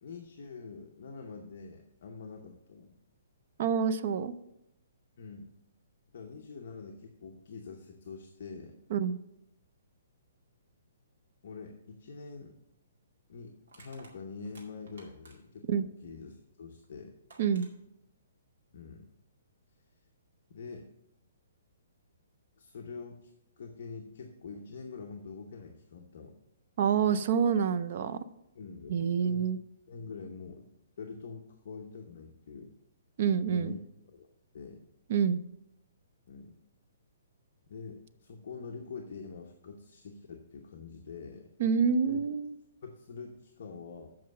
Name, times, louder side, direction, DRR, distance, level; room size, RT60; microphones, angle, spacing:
voice 1, 0.0-2.9 5.2-5.5 6.1-8.8 11.4-12.6 13.3-17.1 18.7-19.1 20.5-20.9 22.6-23.3 23.6-26.3 28.5-29.5 29.9-30.7 31.0-32.7 33.5-33.8 34.1-34.3 34.5-34.8 36.3-36.5 37.7-41.5 42.1-42.2 42.8-44.1, left 4 dB, 40° left, 2 dB, 0.8 m, -45 dB
voice 2, 3.6-4.3 8.9-9.2 15.7-15.8 17.4-17.7 26.8-28.2 28.9-29.6 33.2-33.8 35.1-35.4 41.6-42.5, right 7 dB, 35° right, 14 dB, 0.4 m, -27 dB
Crushing, 12.3-12.5 13.7-15.6 16.8-16.9 17.3-17.7, right 3 dB, 55° right, 2.1 m, -56 dB
7.6 x 5.5 x 6.5 m, 0.85 s
hypercardioid pair, 180°, 0 cm